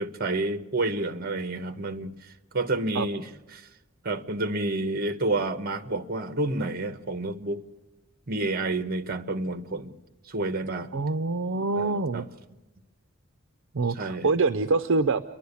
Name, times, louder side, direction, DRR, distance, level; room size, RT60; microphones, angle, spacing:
voice 1, 0.0-3.3 3.5-3.7 4.0-7.6 8.3-9.9 10.3-10.9 11.8-12.2 14.0-14.3, right 2 dB, 45° right, 1.3 m, -29 dB
voice 2, 10.9-12.3 13.7-15.2, right 3 dB, 65° right, 0.6 m, -25 dB
29.5 x 11.5 x 8.4 m
head